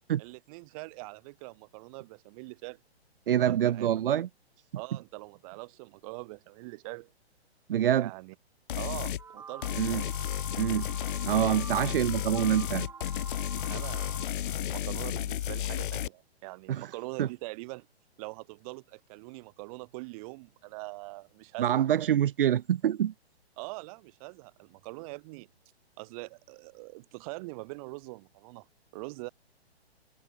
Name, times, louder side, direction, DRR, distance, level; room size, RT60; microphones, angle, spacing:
voice 1, 0.2-2.8 3.4-3.9 4.7-7.1 8.0-8.3 8.8-10.3 13.7-17.9 18.2-21.7 23.6-25.5 26.0-28.7 28.9-29.3, right 25 dB, 35° right, 2.0 m, -43 dB
voice 2, 3.3-4.3 7.7-8.1 9.8-10.0 10.5-10.9 11.3-12.9 16.7-16.9 17.2-17.3 21.6-23.1, right 11 dB, 55° right, 0.9 m, -26 dB
sound 1, 8.7-9.2 9.6-16.1, left 11 dB, 50° left, 3.1 m, -33 dB
sound 2, 9.2-14.3, right 6 dB, 10° right, 1.1 m, -46 dB
figure-of-eight pair, 125°, 32 cm